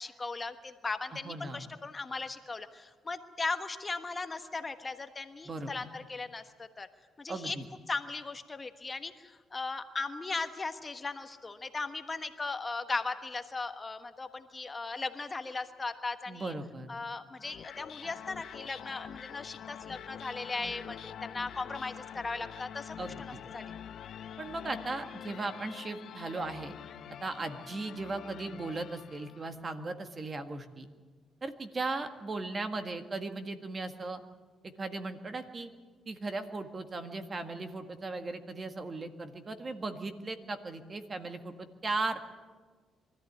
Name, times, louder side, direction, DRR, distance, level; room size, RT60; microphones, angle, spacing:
voice 1, 0.0-6.9 7.2-7.6 7.9-16.5 16.9-23.0 23.5-23.7, left 3 dB, 25° left, 8 dB, 1.3 m, -37 dB
voice 2, 1.2-1.6 5.4-5.9 7.3-7.6 16.3-16.9 23.0-23.4 24.4-26.8 27.2-30.9 31.4-34.2 34.6-35.7 36.0-42.3, right 3 dB, 35° right, 7 dB, 1.8 m, -37 dB
sound 1, 17.4-29.6, left 9 dB, 65° left, 0.7 m, -46 dB
24.0 x 14.0 x 9.5 m, 1.4 s
cardioid pair, 90°, 0 cm